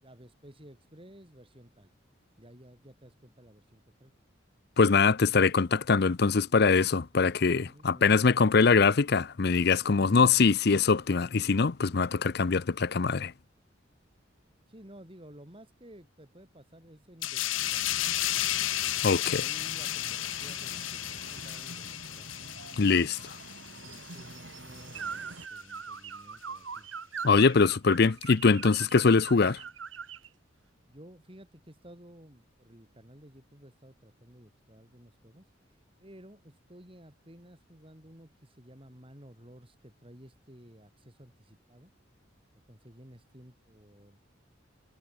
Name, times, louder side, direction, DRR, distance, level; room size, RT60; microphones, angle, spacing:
voice 1, 0.0-1.9 2.4-4.1 7.6-8.3 9.8-10.4 14.7-17.8 19.2-22.3 23.6-26.9 30.9-35.5 36.0-41.9 42.7-44.2, equal, 30° right, 4.9 m, -53 dB
voice 2, 4.8-13.3 19.0-19.5 22.8-23.3 27.2-29.6, left 4 dB, 55° left, 0.6 m, -23 dB
sound 1, 17.2-24.4 24.7-25.0, left 14 dB, 90° left, 0.7 m, -33 dB
sound 2, 17.5-25.5, right 2 dB, 70° right, 3.9 m, -47 dB
sound 3, 24.9-30.3, right 6 dB, 85° right, 2.3 m, -41 dB
head